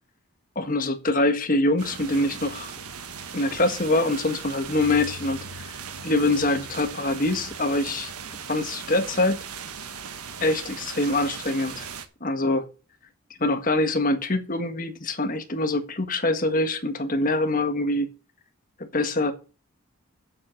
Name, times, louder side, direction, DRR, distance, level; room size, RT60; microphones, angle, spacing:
voice 1, 0.5-2.7 3.3-5.7 6.0-8.1 8.5-9.4 10.4-11.9 12.2-12.7 13.4-18.1 18.8-19.3, left 2 dB, 40° left, 1.6 m, -24 dB
sound 1, 1.8-12.0, right 6 dB, 90° right, 1.4 m, -38 dB
7.3 x 7.3 x 7.7 m
head